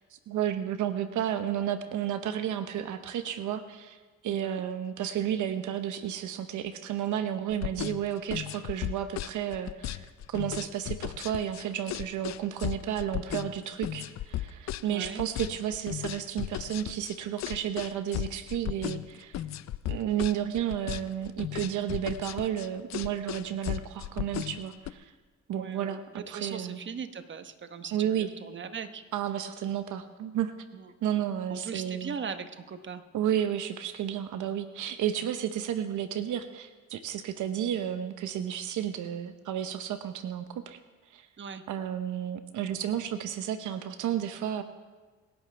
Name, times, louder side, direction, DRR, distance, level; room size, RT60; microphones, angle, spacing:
voice 1, 0.3-19.4 19.9-25.1 25.5-26.8 27.9-28.3 29.1-30.5 31.0-32.2 33.1-40.8 41.1-41.3 41.7-44.6, right 10 dB, 80° right, 9 dB, 0.9 m, -32 dB
voice 2, 4.3-4.6 14.8-15.2 25.5-29.0 30.7-30.9 31.5-33.0 41.4-41.6, right 6 dB, 40° right, 9 dB, 1.1 m, -39 dB
sound 1, 7.5-24.9, left 13 dB, 60° left, 0.6 m, -35 dB
25.0 x 11.0 x 3.4 m, 1.4 s
cardioid pair, 90°, 30 cm